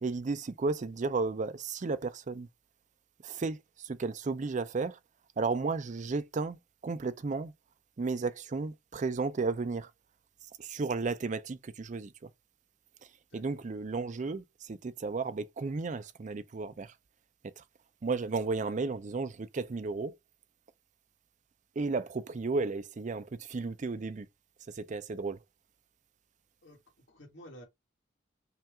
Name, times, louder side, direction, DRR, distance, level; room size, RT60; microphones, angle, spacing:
voice 1, 0.0-2.5 3.2-5.0 5.4-7.5 8.0-9.9 10.6-12.3 13.3-16.9 17.4-17.6 18.0-20.2 21.8-24.3 24.7-25.4, right 4 dB, 40° right, 0.4 m, -33 dB
voice 2, 13.3-13.6 26.6-27.6, equal, 70° left, 1.8 m, -52 dB
5.6 x 2.4 x 3.5 m
head